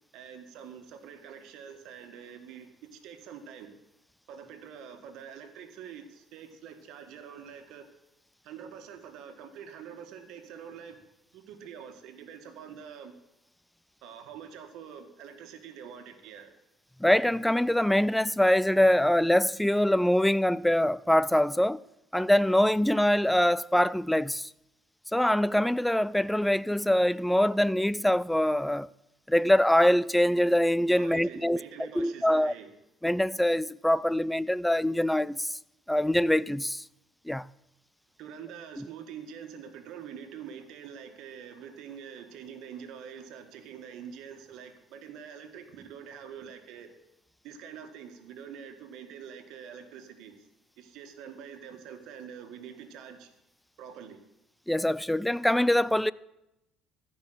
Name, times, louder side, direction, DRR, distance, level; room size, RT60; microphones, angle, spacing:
voice 1, 0.1-3.7 4.3-7.9 8.4-11.0 11.3-13.1 14.0-16.5 30.9-32.7 38.2-46.9 47.4-50.3 50.8-53.3 53.8-54.2, right 7 dB, 70° right, 1.7 m, -45 dB
voice 2, 17.0-21.8 22.1-24.5 25.1-28.9 29.3-31.6 31.9-32.5 33.0-35.6 35.9-36.8 37.3-37.5 38.8-38.9 54.7-56.1, left 1 dB, 5° left, 0.4 m, -24 dB
14.0 x 5.6 x 7.9 m
supercardioid pair, 85°, 0 cm